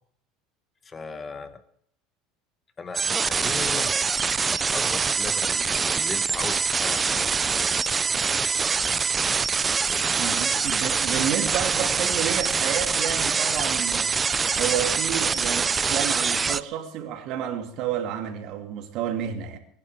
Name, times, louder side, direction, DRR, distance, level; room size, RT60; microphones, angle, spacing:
voice 1, 0.8-1.6 2.8-4.0 4.6-7.3, left 4 dB, 25° left, 1.2 m, -37 dB
sound 1, 2.9-16.6, right 5 dB, 20° right, 0.5 m, -24 dB
voice 2, 10.2-14.1 14.6-19.6, right 10 dB, 60° right, 2.6 m, -30 dB
22.5 x 11.0 x 5.0 m
supercardioid pair, 120°, 0 cm